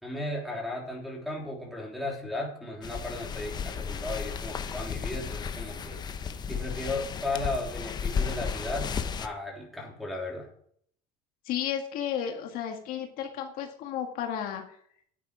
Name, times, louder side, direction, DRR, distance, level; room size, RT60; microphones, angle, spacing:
voice 1, 0.0-6.0 6.5-8.9 9.2-10.5, left 2 dB, ahead, -1 dB, 3.4 m, -35 dB
sound 1, 2.8-9.3, left 6 dB, 25° left, 0.8 m, -34 dB
voice 2, 11.5-14.6, left 9 dB, 60° left, 3 dB, 1.8 m, -33 dB
10.0 x 9.1 x 5.0 m, 0.63 s
cardioid pair, 150°, 17 cm